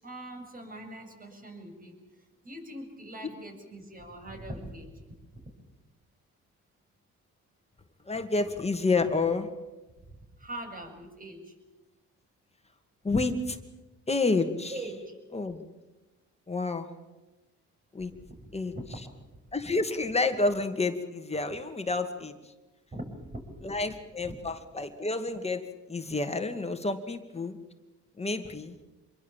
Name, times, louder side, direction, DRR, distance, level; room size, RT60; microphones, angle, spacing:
voice 1, 0.0-5.5 10.1-11.6 14.7-15.2 18.3-19.0 22.9-23.7 24.2-24.4, right 1 dB, 30° right, 4 dB, 7.2 m, -42 dB
voice 2, 8.1-9.5 13.0-13.6 14.1-14.7 15.3-15.6 16.5-16.9 17.9-18.1 18.5-18.7 19.5-22.3 23.6-27.6 28.2-28.8, left 3 dB, 20° left, 6 dB, 2.4 m, -29 dB
27.0 x 22.5 x 7.5 m, 1.1 s
cardioid pair, 90°, 30 cm